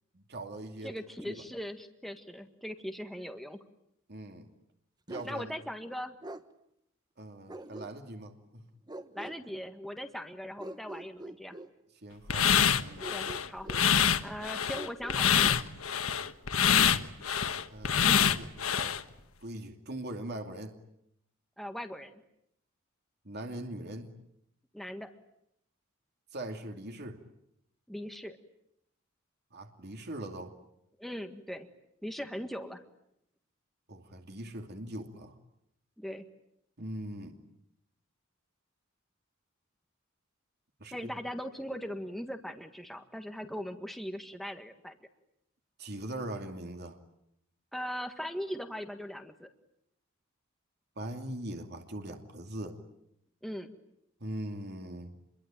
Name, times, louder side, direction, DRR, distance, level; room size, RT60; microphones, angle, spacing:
voice 1, 0.1-0.9 1.3-1.4 4.1-4.5 5.1-5.6 7.2-8.6 12.0-13.1 16.6-16.7 17.7-19.0 19.4-20.8 23.2-24.1 26.3-27.2 29.5-30.5 33.9-35.4 36.8-37.4 40.8-41.1 45.8-47.0 51.0-52.8 54.2-55.2, right 1 dB, 50° right, 4 dB, 2.7 m, -41 dB
voice 2, 0.8-3.6 5.2-6.1 9.1-11.6 13.1-13.7 14.2-15.4 18.0-18.3 21.6-22.2 24.7-25.1 27.9-28.4 31.0-31.7 32.0-32.8 36.0-36.2 40.9-44.9 47.7-49.5 53.4-53.7, equal, ahead, 6 dB, 1.6 m, -40 dB
Bark, 5.1-5.4 6.2-6.5 7.5-8.2 8.9-9.4 10.6-11.7 13.0-13.9 14.7-15.6, right 1 dB, 20° right, 1.2 m, -44 dB
sound 1, 12.3-19.0, left 8 dB, 80° left, 1.3 m, -26 dB
27.5 x 23.0 x 9.0 m, 0.77 s
head